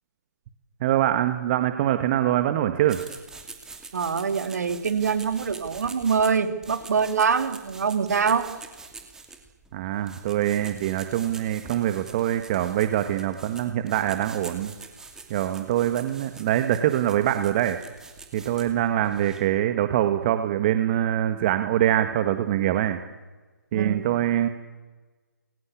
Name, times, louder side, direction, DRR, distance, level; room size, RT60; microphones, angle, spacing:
voice 1, 0.8-3.0 9.7-14.7 15.3-17.8 18.3-23.0 23.7-24.5, right 12 dB, 30° right, 8 dB, 1.7 m, -24 dB
sound 1, 2.9-19.6, right 4 dB, 5° right, 2.7 m, -45 dB
voice 2, 3.9-8.5 23.7-24.2, right 6 dB, 60° right, 9 dB, 3.1 m, -24 dB
28.5 x 22.5 x 8.5 m, 1.3 s
figure-of-eight pair, 145°, 10 cm